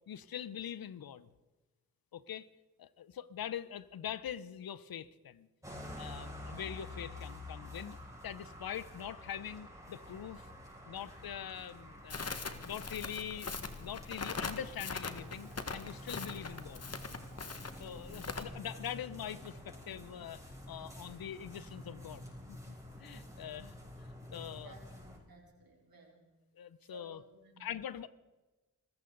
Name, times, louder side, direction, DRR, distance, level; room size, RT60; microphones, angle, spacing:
voice 1, 0.1-1.3 2.1-2.5 2.8-5.5 6.0-8.0 8.2-10.5 10.8-16.9 17.8-23.7 24.3-24.7 26.5-27.2 27.6-28.1, left 9 dB, 70° left, 17 dB, 0.7 m, -43 dB
sound 1, 5.6-25.2, left 1 dB, 10° right, 6.6 m, -49 dB
Crackle, 12.1-18.4, left 4 dB, 40° left, 1.6 m, -42 dB
voice 2, 24.5-26.2 26.8-27.7, right 4 dB, 70° right, -1 dB, 4.4 m, -58 dB
24.0 x 14.5 x 3.9 m, 1.2 s
cardioid pair, 50°, 37 cm